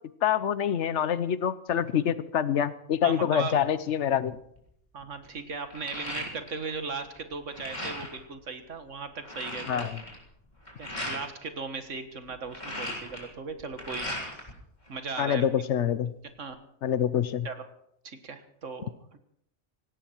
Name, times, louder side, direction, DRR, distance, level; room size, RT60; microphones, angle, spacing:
voice 1, 0.2-4.4 9.7-9.9 15.2-16.1 16.8-17.5, left 9 dB, 70° left, 15 dB, 1.1 m, -26 dB
voice 2, 3.0-3.6 4.9-9.9 10.8-14.2 14.9-15.7 16.4-16.6 17.4-17.6 18.0-19.2, right 4 dB, 90° right, 8 dB, 1.9 m, -37 dB
sound 1, 4.6-4.7 5.0-6.8 7.0-8.2 8.7-8.8 9.0-11.2 12.3-14.5 14.9-15.7, left 1 dB, 35° left, 3.9 m, -38 dB
17.5 x 17.0 x 4.5 m, 0.74 s
omnidirectional pair, 1.2 m